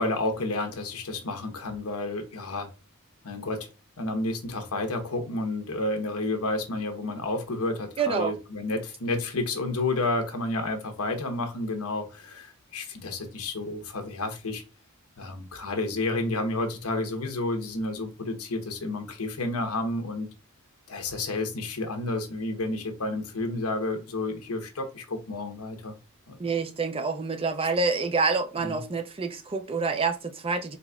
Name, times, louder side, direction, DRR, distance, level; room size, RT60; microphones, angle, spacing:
voice 1, 0.0-2.7 3.2-3.7 4.0-14.6 15.2-20.3 20.9-26.0 26.3-26.4 28.6-28.8, left 2 dB, 90° left, 1.0 m, -30 dB
voice 2, 8.0-8.3 26.4-30.8, right 4 dB, 25° right, 0.5 m, -27 dB
4.1 x 4.0 x 2.3 m
head